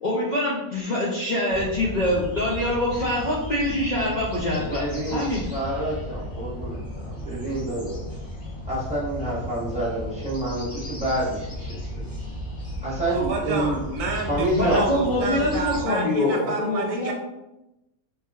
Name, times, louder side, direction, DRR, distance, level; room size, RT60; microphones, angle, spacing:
voice 1, 0.0-4.8 5.1-5.4 14.5-17.1, left 1 dB, 75° left, -6 dB, 0.4 m, -24 dB
sound 1, 1.5-15.8, equal, 30° left, 1.4 m, -35 dB
voice 2, 4.5-5.2 5.5-8.0 8.7-12.0 12.8-13.8 14.3-14.8, right 1 dB, 5° right, -9 dB, 1.0 m, -28 dB
voice 3, 13.1-17.1, right 4 dB, 70° right, 1 dB, 0.9 m, -29 dB
3.3 x 2.7 x 2.3 m, 0.92 s
omnidirectional pair, 1.6 m